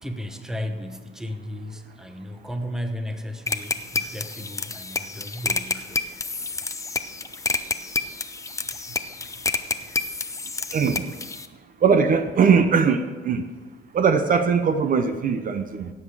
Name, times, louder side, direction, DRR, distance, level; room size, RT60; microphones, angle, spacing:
voice 1, 0.0-6.0, equal, 5° right, 7 dB, 0.9 m, -34 dB
sound 1, 3.5-11.5, left 3 dB, 15° left, 0.6 m, -29 dB
voice 2, 10.7-11.1 11.8-13.4 13.9-15.9, right 6 dB, 45° right, 9 dB, 0.7 m, -20 dB
17.0 x 7.7 x 4.8 m, 1.3 s
cardioid pair, 130°, 20 cm